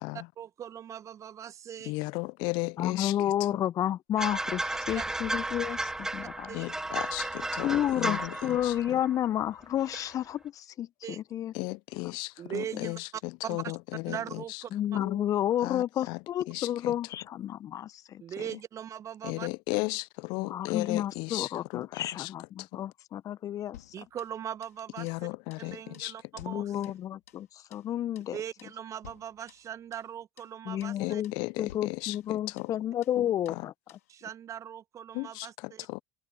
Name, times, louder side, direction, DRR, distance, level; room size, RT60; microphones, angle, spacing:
voice 1, 0.4-1.9 4.9-5.0 6.5-6.6 11.0-11.2 12.4-13.0 13.4-13.7 14.1-14.7 18.2-19.5 23.9-25.3 25.6-26.7 28.3-31.2 34.1-35.8, right 9 dB, 35° right, 1.5 m, -40 dB
voice 2, 1.8-3.2 3.5-3.6 6.5-9.0 11.5-14.6 14.9-15.3 15.6-16.2 16.5-16.9 19.2-22.3 22.6-22.8 25.0-26.1 26.5-26.6 31.0-32.7 33.2-33.7 35.1-36.0, left 28 dB, 55° left, 0.9 m, -35 dB
voice 3, 2.8-6.6 7.6-11.5 12.7-12.9 14.7-18.2 20.4-23.9 26.4-28.4 30.6-31.3 31.6-33.7, left 11 dB, 40° left, 1.3 m, -31 dB
sound 1, 4.2-9.5 9.8-10.1, right 2 dB, 5° right, 0.4 m, -34 dB
sound 2, 23.7-24.8 25.1-25.2 25.5-25.7 25.9-27.5 27.7-27.9 28.1-28.3 28.6-28.8 29.0-30.1 30.4-30.5 30.8-31.0 31.2-31.4 31.7-32.8 33.0-33.2 33.4-33.6 33.9-34.1, left 12 dB, 75° left, 5.2 m, -55 dB
figure-of-eight pair, 70°, 9 cm